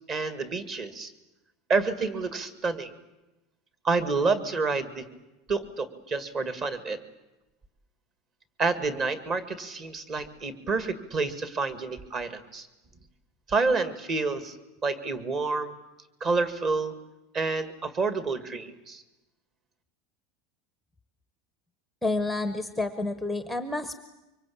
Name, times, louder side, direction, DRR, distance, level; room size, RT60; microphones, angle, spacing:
voice 1, 0.1-1.1 1.7-2.9 3.8-5.1 5.5-7.0 8.6-12.7 13.5-14.6 14.8-15.7 16.2-16.9 17.3-19.0, right 4 dB, 25° right, 12 dB, 2.1 m, -28 dB
voice 2, 22.0-23.9, left 2 dB, ahead, 9 dB, 1.0 m, -29 dB
24.5 x 24.5 x 8.7 m, 0.99 s
supercardioid pair, 165°, 0 cm